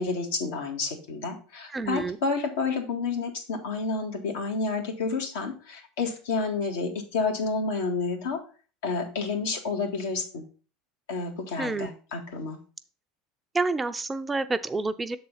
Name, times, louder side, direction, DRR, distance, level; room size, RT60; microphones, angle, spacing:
voice 1, 0.0-8.4 8.8-10.4 11.1-12.6, left 4 dB, 80° left, 2 dB, 1.8 m, -30 dB
voice 2, 1.7-2.2 11.6-11.9 13.5-15.2, right 3 dB, 15° right, 10 dB, 0.5 m, -28 dB
6.8 x 4.2 x 5.5 m, 0.38 s
hypercardioid pair, 95°, 0 cm